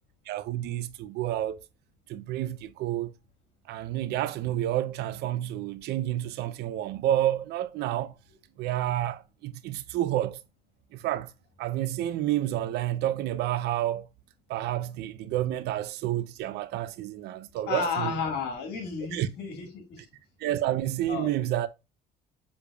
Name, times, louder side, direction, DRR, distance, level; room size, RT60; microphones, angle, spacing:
voice 1, 0.3-1.6 2.1-3.1 3.7-8.1 8.6-10.4 10.9-11.3 11.6-14.1 14.5-18.2 19.1-19.3 20.4-21.7, right 13 dB, 75° right, 0.5 m, -29 dB
voice 2, 17.7-20.0 21.0-21.3, left 5 dB, 80° left, 1.8 m, -32 dB
6.9 x 3.3 x 2.3 m
cardioid pair, 110°, 17 cm